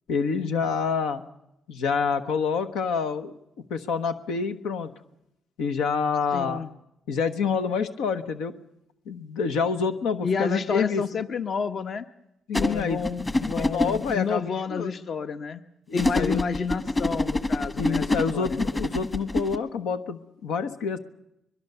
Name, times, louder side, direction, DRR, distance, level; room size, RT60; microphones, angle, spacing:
voice 1, 0.1-1.2 1.7-3.4 3.7-4.9 5.6-6.6 7.1-8.5 9.1-11.0 12.5-13.0 13.5-14.4 14.7-14.9 15.9-16.4 17.8-21.0, left 5 dB, 90° left, 9 dB, 1.2 m, -27 dB
voice 2, 6.3-6.7 10.2-12.0 12.6-15.6 15.9-18.6, left 5 dB, 50° left, 10 dB, 1.0 m, -30 dB
sound 1, 12.5-14.1 16.0-19.6, left 2 dB, 20° left, 1.5 m, -26 dB
23.0 x 21.5 x 6.9 m, 0.84 s
cardioid pair, 90°, 0 cm